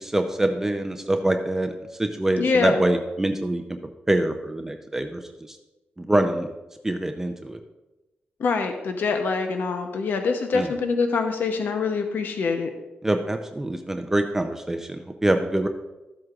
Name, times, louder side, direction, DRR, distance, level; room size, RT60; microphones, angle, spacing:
voice 1, 0.0-1.7 2.0-3.6 4.1-5.2 5.5-5.6 6.0-6.5 6.8-7.6 10.5-10.7 13.0-15.7, right 1 dB, 10° right, 5 dB, 0.5 m, -24 dB
voice 2, 2.4-2.8 8.4-12.7, left 4 dB, 65° left, 5 dB, 0.8 m, -24 dB
13.5 x 7.8 x 2.4 m, 1.0 s
wide cardioid pair, 130°, 4 cm